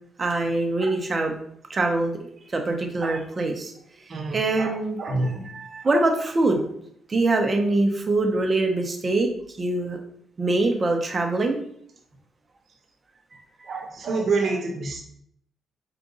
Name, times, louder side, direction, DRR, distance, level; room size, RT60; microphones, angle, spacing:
voice 1, 0.2-1.3 1.7-3.7 4.3-5.0 5.5-6.6 7.1-9.3 9.6-10.0 10.4-11.6, right 2 dB, 30° right, 3 dB, 0.9 m, -23 dB
voice 2, 4.1-5.4 5.8-5.9 13.6-15.0, right 3 dB, 50° right, 1 dB, 1.2 m, -28 dB
4.8 x 2.6 x 3.9 m, 0.68 s
cardioid pair, 90°, 0 cm